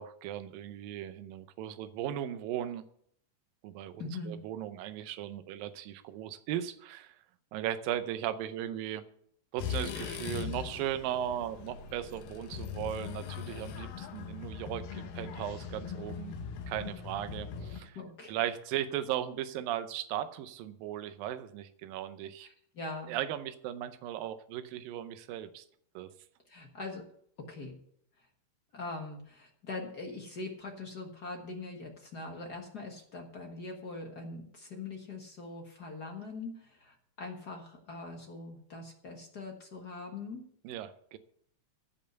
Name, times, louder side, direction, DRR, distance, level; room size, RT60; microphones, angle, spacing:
voice 1, 0.0-2.9 3.6-7.2 7.5-9.0 9.5-16.4 16.7-18.0 18.3-22.5 23.1-25.7 26.0-26.1 40.6-41.2, right 11 dB, 85° right, 11 dB, 2.5 m, -37 dB
voice 2, 4.0-4.4 17.8-18.3 22.4-23.1 26.5-27.0 27.4-27.8 28.2-28.3 28.7-40.4, left 3 dB, 50° left, 2 dB, 1.2 m, -42 dB
sound 1, 9.6-17.8, left 7 dB, 80° left, 2.9 m, -40 dB
15.5 x 5.4 x 7.9 m, 0.66 s
omnidirectional pair, 4.0 m